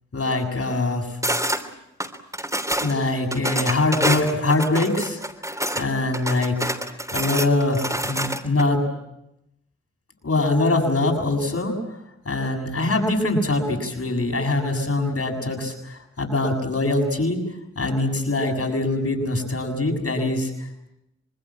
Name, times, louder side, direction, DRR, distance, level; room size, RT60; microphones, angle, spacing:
voice 1, 0.1-1.2 2.8-5.2 5.8-6.5 7.1-8.8 10.2-11.8 12.3-17.4 17.8-20.9, left 2 dB, 55° left, 3 dB, 7.1 m, -23 dB
sound 1, 1.2-1.6 2.0-2.9 3.3-5.8 6.1-8.6, right 1 dB, 10° right, 3.4 m, -26 dB
26.0 x 21.0 x 8.7 m, 0.85 s
cardioid pair, 40°, 29 cm